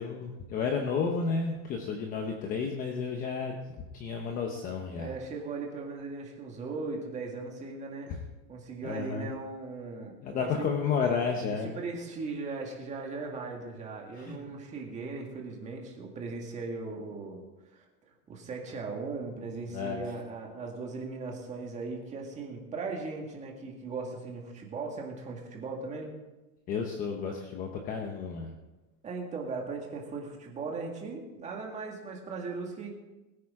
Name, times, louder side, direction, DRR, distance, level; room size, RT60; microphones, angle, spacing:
voice 1, 0.0-3.5 3.9-5.1 8.1-8.2 8.8-9.3 10.2-11.8 14.2-14.4 19.7-20.0 26.7-28.5, left 5 dB, 20° left, 2 dB, 0.8 m, -32 dB
voice 2, 5.0-8.1 8.5-10.7 11.5-17.4 17.7-17.9 18.3-26.1 29.0-32.9, right 4 dB, 15° right, 0 dB, 1.9 m, -38 dB
21.0 x 9.3 x 3.7 m, 1.1 s
supercardioid pair, 170°, 44 cm